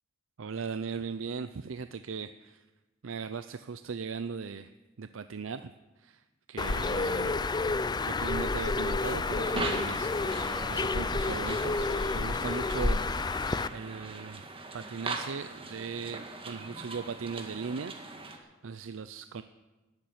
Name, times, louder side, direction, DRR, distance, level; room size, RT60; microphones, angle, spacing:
voice 1, 0.4-2.6 3.0-4.7 5.0-5.7 6.0-7.5 8.0-11.9 12.1-13.4 13.7-14.5 14.7-19.4, right 5 dB, 85° right, 11 dB, 0.5 m, -38 dB
Bird, 6.6-13.7, left 3 dB, 20° left, 0.4 m, -30 dB
sound 1, 9.0-18.4, right 3 dB, 30° right, 1.8 m, -41 dB
12.0 x 11.5 x 9.6 m, 1.1 s
head